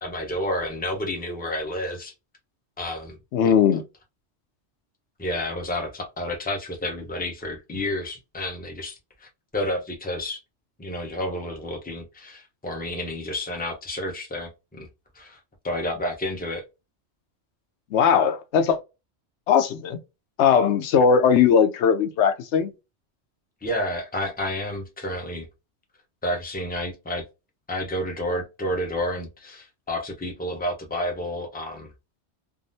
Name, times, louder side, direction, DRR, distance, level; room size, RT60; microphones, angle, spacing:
voice 1, 0.0-2.1 2.8-3.2 5.2-10.4 10.8-14.9 15.1-15.4 15.6-16.6 23.6-25.5 26.2-27.2 27.7-31.9, left 1 dB, 10° left, 0.7 m, -30 dB
voice 2, 3.3-3.8 17.9-18.8 19.5-20.0 20.4-22.7, left 7 dB, 85° left, 0.9 m, -19 dB
3.6 x 2.0 x 2.6 m
omnidirectional pair, 1.1 m